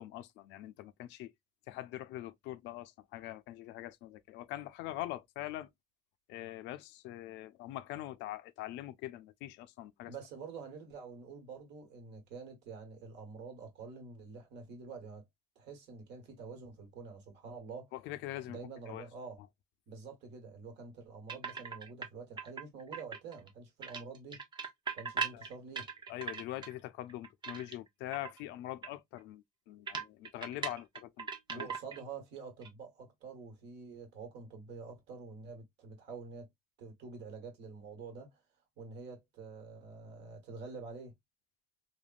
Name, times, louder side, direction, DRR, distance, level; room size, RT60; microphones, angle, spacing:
voice 1, 0.0-1.3 1.7-5.7 6.3-10.1 18.1-18.6 18.9-19.0 25.3-25.4 26.1-31.7, left 14 dB, 75° left, 0.4 m, -43 dB
voice 2, 10.1-15.2 15.5-17.9 18.4-19.4 19.9-24.4 24.9-25.9 31.5-36.5 36.8-38.4 38.8-41.1, right 4 dB, 70° right, 1.4 m, -47 dB
sound 1, 21.3-22.1 22.4-23.5 23.8-26.7 27.1-27.9 28.1-28.4 28.8-28.9 29.2-29.3 29.9-32.1 32.4-32.7, right 5 dB, 25° right, 0.7 m, -39 dB
3.4 x 2.1 x 2.4 m
cardioid pair, 135°, 18 cm